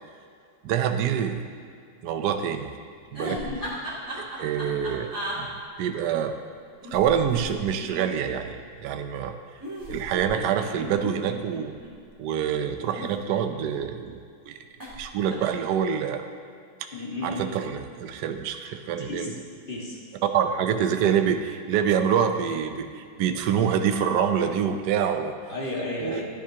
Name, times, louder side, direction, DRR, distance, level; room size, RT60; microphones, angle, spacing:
voice 1, 0.6-1.4 2.0-2.7 3.1-3.4 4.1-5.5 5.8-6.3 6.9-9.3 9.9-11.7 12.2-14.6 15.0-16.2 17.2-19.3 20.3-25.3 26.0-26.2, right 8 dB, 65° right, 7 dB, 1.1 m, -26 dB
sound 1, 3.1-5.4 6.8-8.3 9.6-11.9 12.8-13.8 14.8-15.0 15.3-15.7, equal, 10° right, 2.6 m, -37 dB
voice 2, 3.2-3.6 16.9-17.5 19.0-19.3 19.7-20.0 25.5-26.3, left 2 dB, 25° left, -4 dB, 1.7 m, -33 dB
14.0 x 10.5 x 2.9 m, 2.3 s
omnidirectional pair, 2.2 m